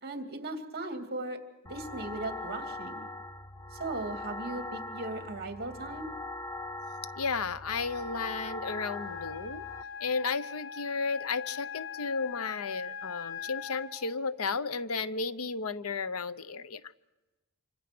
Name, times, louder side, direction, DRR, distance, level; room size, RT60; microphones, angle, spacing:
voice 1, 0.0-3.1 3.7-6.1, right 2 dB, 50° right, 5 dB, 2.6 m, -38 dB
sound 1, 1.7-9.8, left 2 dB, 15° left, 0.8 m, -41 dB
voice 2, 7.2-9.7 10.0-16.8, left 4 dB, 85° left, 15 dB, 0.8 m, -33 dB
Wind instrument woodwind instrument, 8.6-14.0, left 7 dB, 65° left, 2.3 m, -41 dB
27.0 x 25.0 x 6.1 m, 1.1 s
head